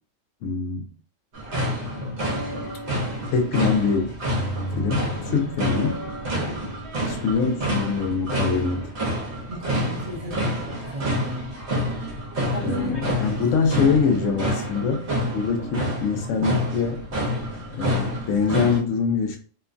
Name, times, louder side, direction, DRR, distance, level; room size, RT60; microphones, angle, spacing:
voice 1, 0.4-0.9 3.3-4.1 4.8-5.9 7.0-8.9 12.6-17.0 17.7-19.4, left 5 dB, 75° left, 0.9 m, -24 dB
sound 1, 1.3-18.8, equal, 65° right, 1.1 m, -28 dB
sound 2, 1.8-4.0 4.3-8.6 13.7-15.7, left 1 dB, 40° left, 0.6 m, -38 dB
voice 2, 5.3-5.7 6.3-6.8 9.5-11.5 12.5-13.0 16.3-16.5, right 1 dB, 35° right, 0.8 m, -34 dB
2.9 x 2.1 x 2.5 m
omnidirectional pair, 1.3 m